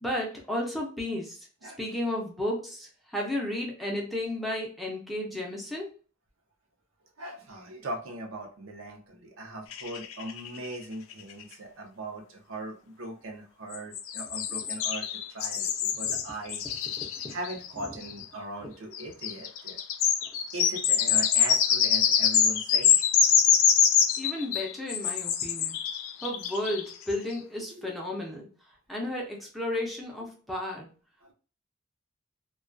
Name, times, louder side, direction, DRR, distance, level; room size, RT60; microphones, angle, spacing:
voice 1, 0.0-5.9 14.6-14.7 16.0-16.2 17.0-17.3 17.9-18.0 24.2-25.8 26.2-28.5 28.9-30.9, left 1 dB, ahead, -2 dB, 0.5 m, -33 dB
voice 2, 7.2-16.6 17.3-19.8 20.5-23.1 27.7-27.9 31.2-31.3, right 1 dB, 80° right, 2 dB, 0.6 m, -39 dB
sound 1, 9.7-10.8 11.1-11.2 11.4-11.5 13.7-18.2 18.9-27.1, left 7 dB, 85° left, 0.3 m, -25 dB
2.2 x 2.2 x 2.5 m, 0.37 s
head